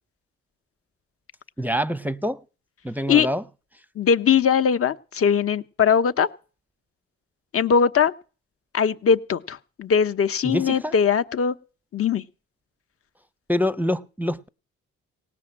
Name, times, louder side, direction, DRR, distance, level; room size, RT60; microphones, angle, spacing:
voice 1, 1.6-2.4 2.8-3.4 10.4-10.9 13.5-14.5, equal, 5° right, 0.6 m, -25 dB
voice 2, 4.0-6.3 7.5-8.1 8.7-11.5 11.9-12.2, left 7 dB, 50° left, 1.0 m, -20 dB
18.0 x 6.2 x 8.7 m
cardioid pair, 90°, 30 cm